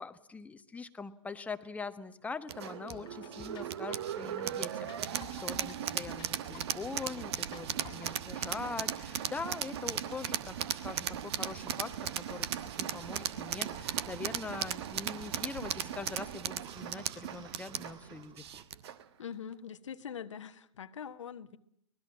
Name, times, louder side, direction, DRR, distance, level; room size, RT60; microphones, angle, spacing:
voice 1, 0.0-11.9 12.3-18.4, left 4 dB, 10° left, 10 dB, 1.2 m, -43 dB
sound 1, 2.5-19.0, right 10 dB, 55° right, 1.3 m, -37 dB
sound 2, 2.9-8.2, left 10 dB, 30° left, 1.4 m, -53 dB
sound 3, 10.4-18.6, right 7 dB, 25° right, 1.5 m, -55 dB
voice 2, 19.2-21.6, left 8 dB, 70° left, 10 dB, 1.3 m, -43 dB
25.0 x 19.5 x 7.2 m, 0.72 s
figure-of-eight pair, 110°, 16 cm